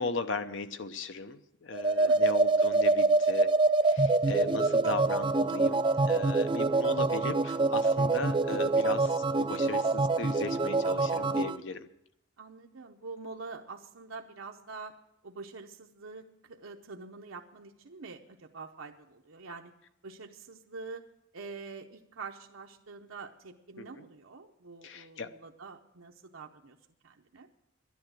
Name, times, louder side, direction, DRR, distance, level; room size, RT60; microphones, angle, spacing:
voice 1, 0.0-3.5 3.8-11.9 23.8-24.1 24.8-25.3, left 3 dB, 65° left, 10 dB, 0.7 m, -37 dB
sound 1, 1.7-11.6, right 3 dB, 25° right, 0.4 m, -26 dB
voice 2, 12.4-14.9 15.2-19.7 20.0-21.0 21.3-26.8 27.0-27.5, right 4 dB, 80° right, 2 dB, 0.8 m, -45 dB
12.0 x 10.5 x 7.7 m, 0.81 s
head